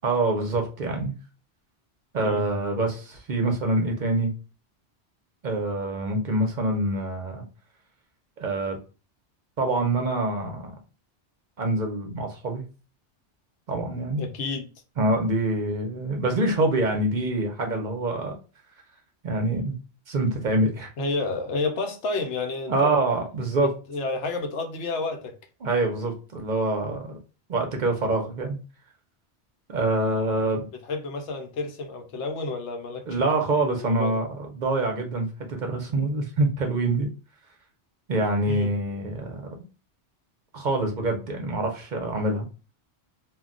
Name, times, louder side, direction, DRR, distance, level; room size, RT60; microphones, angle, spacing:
voice 1, 0.0-1.1 2.1-4.3 5.4-7.4 8.4-8.8 9.6-10.7 11.6-12.6 13.7-14.2 15.0-18.3 19.2-19.7 20.1-20.9 22.7-23.7 25.6-27.2 27.5-28.6 29.7-30.6 33.1-37.1 38.1-39.5 40.5-42.5, right 2 dB, 50° right, 0.6 m, -25 dB
voice 2, 14.2-14.7 21.0-22.9 23.6-25.4 30.4-33.2 33.7-34.2 38.5-38.7, left 3 dB, 90° left, 1.0 m, -31 dB
2.3 x 2.2 x 3.7 m
omnidirectional pair, 1.1 m